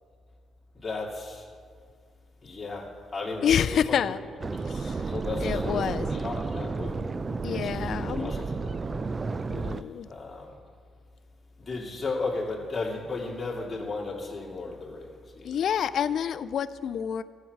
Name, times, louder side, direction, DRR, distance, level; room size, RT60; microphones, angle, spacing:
voice 1, 0.7-1.5 2.4-4.1 4.7-7.1 7.5-9.2 9.5-9.8 10.0-10.5 11.6-15.6, left 3 dB, 30° left, -3 dB, 2.5 m, -35 dB
voice 2, 3.4-4.2 4.7-5.0 5.4-6.1 7.4-8.3 9.5-10.1 15.4-17.2, left 8 dB, 65° left, 14 dB, 0.4 m, -28 dB
sound 1, 4.4-9.8, right 4 dB, 30° right, 0.4 m, -32 dB
15.0 x 6.6 x 4.6 m, 2.1 s
cardioid pair, 90°, 0 cm